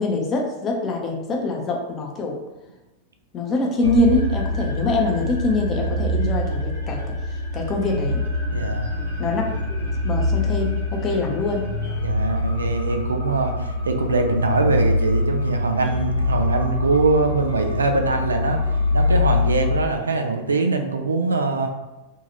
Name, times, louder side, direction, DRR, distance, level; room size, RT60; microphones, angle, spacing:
voice 1, 0.0-2.4 3.3-7.1 7.5-8.2 9.2-9.4 10.0-11.7, left 2 dB, 25° left, 1 dB, 0.5 m, -24 dB
sound 1, 3.8-19.8, left 2 dB, 90° right, 0.8 m, -24 dB
voice 2, 8.5-8.9 12.0-18.6 18.9-21.7, right 3 dB, 75° right, 5 dB, 0.3 m, -22 dB
2.7 x 2.3 x 2.8 m, 1.0 s
figure-of-eight pair, 90°, 0 cm